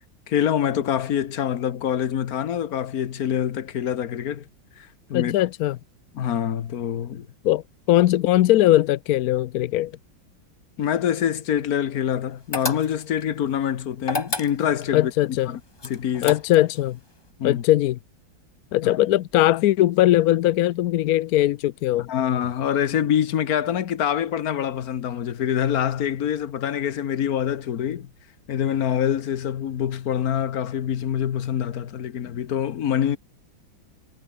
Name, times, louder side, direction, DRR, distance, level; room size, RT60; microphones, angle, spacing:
voice 1, 0.3-4.5 4.8-5.3 6.1-7.3 10.8-16.4 17.4-17.6 22.1-28.1 28.5-33.2, left 9 dB, 55° left, 1.4 m, -25 dB
voice 2, 5.1-5.8 7.4-7.6 7.9-9.9 14.9-15.5 16.2-17.0 17.4-18.0 18.7-22.1, left 14 dB, 75° left, 0.8 m, -20 dB
sound 1, 12.5-13.2 14.0-14.9 15.8-16.8, left 3 dB, 15° left, 0.9 m, -30 dB
omnidirectional pair, 2.2 m